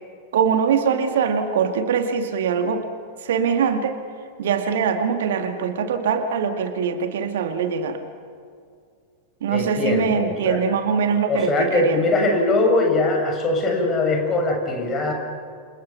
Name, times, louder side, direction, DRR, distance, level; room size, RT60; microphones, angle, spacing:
voice 1, 0.3-2.8 3.2-4.0 4.4-8.0 9.4-12.0, right 6 dB, 60° right, 7 dB, 1.9 m, -22 dB
voice 2, 9.5-10.6 11.3-15.1, left 2 dB, 25° left, 2 dB, 6.8 m, -21 dB
29.0 x 27.5 x 5.8 m, 2.2 s
figure-of-eight pair, 90°, 0 cm